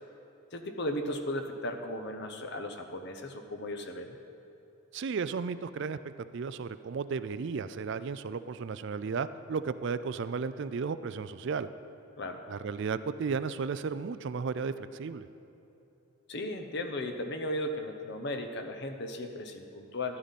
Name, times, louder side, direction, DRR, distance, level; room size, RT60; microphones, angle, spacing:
voice 1, 0.5-4.2 12.2-12.4 16.3-20.2, left 1 dB, 50° left, 6 dB, 0.9 m, -36 dB
voice 2, 4.9-6.0 6.3-11.7 12.5-15.3, right 5 dB, 55° right, 13 dB, 0.4 m, -34 dB
13.5 x 11.0 x 4.2 m, 3.0 s
head